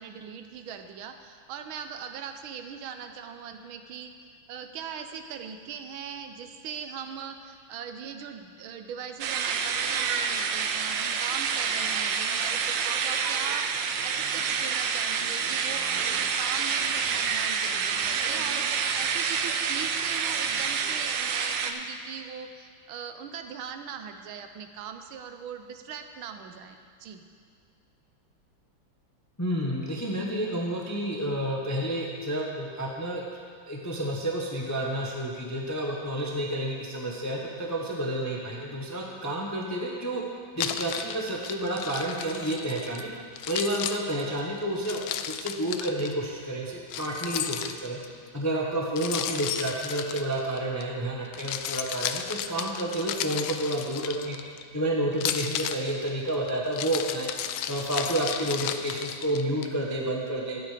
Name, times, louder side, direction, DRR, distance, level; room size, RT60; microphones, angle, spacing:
voice 1, 0.0-27.2 48.7-48.9, right 7 dB, 90° right, 7 dB, 1.5 m, -40 dB
sound 1, 9.2-21.7, right 6 dB, 70° right, 1.3 m, -28 dB
voice 2, 29.4-33.2 33.7-40.2 40.6-43.1 43.5-45.0 45.3-48.0 48.3-54.4 54.7-57.3 57.7-60.6, right 1 dB, 15° left, -2 dB, 0.5 m, -30 dB
Keys jangling, 40.6-43.0 43.4-46.1 46.9-48.1 49.0-50.8 51.3-54.6 55.1-59.7, left 10 dB, 80° left, 1.4 m, -34 dB
12.5 x 8.6 x 5.0 m, 2.2 s
omnidirectional pair, 2.2 m